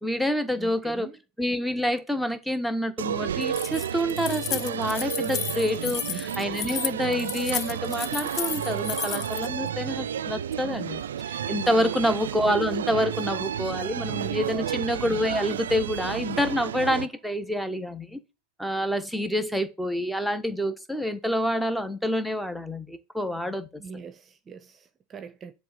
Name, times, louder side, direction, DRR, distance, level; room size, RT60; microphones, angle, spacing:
voice 1, 0.0-1.1 1.4-18.2 18.6-23.7, equal, ahead, 1.3 m, -27 dB
voice 2, 0.6-1.2 6.1-6.3 14.5-14.8 23.8-25.5, right 6 dB, 30° right, 0.8 m, -42 dB
sound 1, 3.0-17.1, right 9 dB, 80° right, 0.4 m, -31 dB
Keys jangling, 3.4-9.5, left 11 dB, 40° left, 0.4 m, -33 dB
7.6 x 3.4 x 5.7 m
hypercardioid pair, 85°, 0 cm